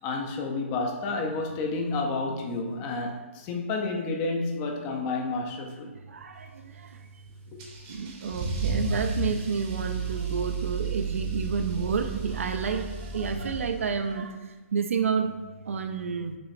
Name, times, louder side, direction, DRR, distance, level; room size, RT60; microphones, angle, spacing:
voice 1, 0.0-5.9 7.5-7.6, left 3 dB, 25° left, 2 dB, 0.5 m, -30 dB
voice 2, 6.1-7.1 7.9-15.3 15.7-16.4, right 6 dB, 75° right, 6 dB, 0.4 m, -30 dB
Car / Engine starting / Accelerating revving vroom, 7.6-14.1, right 4 dB, 30° right, 0.7 m, -32 dB
6.0 x 3.0 x 2.5 m, 1.2 s
hypercardioid pair, 155°, 7 cm